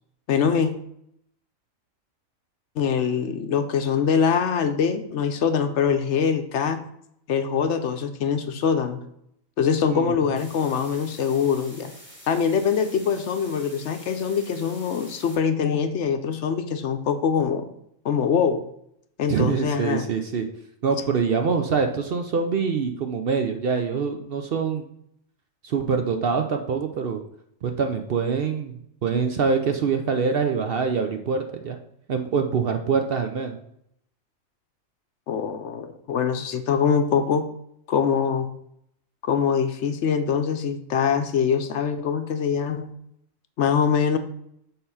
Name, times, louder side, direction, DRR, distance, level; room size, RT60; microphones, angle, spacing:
voice 1, 0.3-0.7 2.8-6.8 7.3-9.0 9.6-11.9 12.3-17.7 18.0-18.6 19.2-20.1 35.3-37.5 37.9-38.5 39.2-42.9 43.6-44.2, left 7 dB, 65° left, 8 dB, 0.9 m, -23 dB
sound 1, 10.4-15.4, equal, 10° right, 1.6 m, -47 dB
voice 2, 19.3-20.5 20.8-24.9 25.6-27.2 27.6-31.8 32.1-33.6, right 5 dB, 55° right, 6 dB, 0.7 m, -25 dB
6.8 x 3.8 x 5.5 m, 0.73 s
omnidirectional pair, 1.4 m